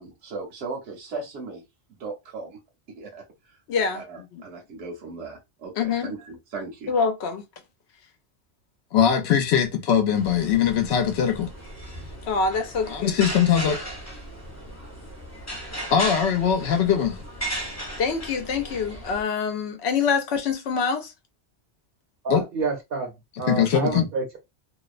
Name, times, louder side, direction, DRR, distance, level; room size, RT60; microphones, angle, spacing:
voice 1, 0.0-1.6 2.0-2.6 2.9-3.6 3.9-6.9, right 3 dB, 80° right, 1.1 m, -37 dB
voice 2, 3.7-4.0 4.3-4.4 5.8-6.1 6.9-7.4 8.9-11.5 12.3-13.8 15.9-17.2 18.0-21.1 22.3-22.4 23.5-24.0, left 7 dB, 70° left, 0.8 m, -22 dB
sound 1, 10.1-19.2, right 1 dB, 25° left, 0.3 m, -36 dB
voice 3, 22.2-23.1 23.4-24.4, right 4 dB, 60° right, 0.7 m, -28 dB
2.6 x 2.0 x 2.4 m
omnidirectional pair, 1.2 m